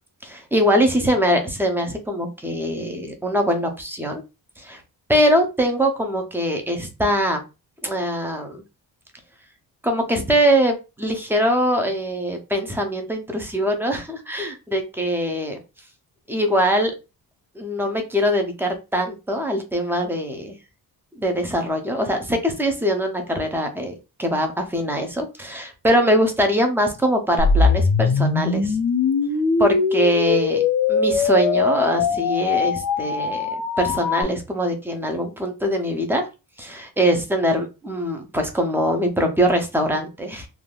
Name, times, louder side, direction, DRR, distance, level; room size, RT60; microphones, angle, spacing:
voice 1, 0.2-4.2 4.6-4.8 5.1-7.4 7.8-8.6 9.8-15.6 16.3-16.9 17.6-20.6 21.2-23.9 24.2-28.8 29.6-30.6 30.9-33.5 33.8-36.3 36.6-40.5, equal, 5° right, 4 dB, 0.4 m, -22 dB
sound 1, 27.4-34.2, left 4 dB, 65° left, 0.6 m, -21 dB
3.4 x 2.3 x 2.2 m, 0.28 s
wide cardioid pair, 160°, 39 cm